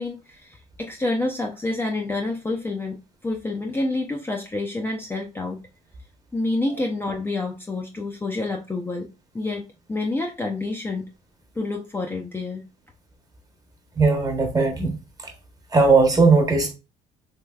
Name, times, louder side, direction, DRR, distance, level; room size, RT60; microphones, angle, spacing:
voice 1, 0.0-3.0 3.2-5.6 6.3-9.1 9.3-11.1 11.6-12.6, left 2 dB, 10° left, 0.5 m, -28 dB
voice 2, 14.0-15.0 15.2-15.3 15.7-16.7, right 4 dB, 20° right, 1.0 m, -18 dB
3.3 x 3.2 x 2.3 m
cardioid pair, 110°, 17 cm